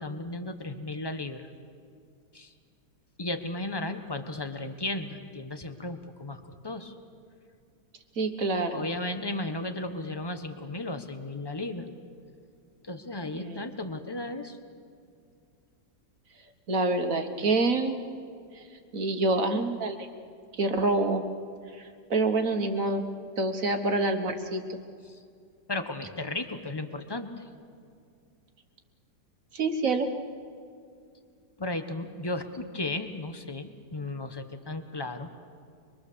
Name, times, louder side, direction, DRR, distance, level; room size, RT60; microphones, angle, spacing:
voice 1, 0.0-1.5 2.3-2.5 3.2-6.9 8.7-11.9 12.8-14.6 25.1-25.2 25.7-27.4 31.6-35.3, left 2 dB, 15° left, 8 dB, 1.1 m, -35 dB
voice 2, 8.2-8.9 13.3-13.7 16.7-18.0 18.5-18.6 18.9-20.1 20.6-21.2 21.7-23.0 23.4-24.8 29.5-30.1, right 2 dB, 55° right, 6 dB, 1.7 m, -27 dB
24.5 x 23.0 x 6.9 m, 2.3 s
omnidirectional pair, 1.8 m